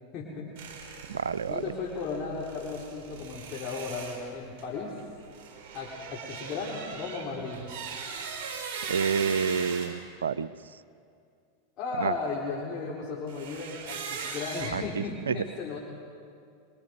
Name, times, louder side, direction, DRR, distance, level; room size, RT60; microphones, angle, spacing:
voice 1, 0.1-0.7 1.5-5.0 5.7-7.6 11.8-15.8, left 4 dB, 45° left, -5 dB, 4.1 m, -35 dB
sound 1, 0.6-9.9 13.3-14.7, right 5 dB, 50° right, 5.3 m, -40 dB
voice 2, 1.1-1.6 8.9-10.5 12.0-12.1 14.7-15.4, right 6 dB, 90° right, 15 dB, 0.6 m, -29 dB
24.0 x 23.5 x 5.4 m, 2.4 s
hypercardioid pair, 100°, 0 cm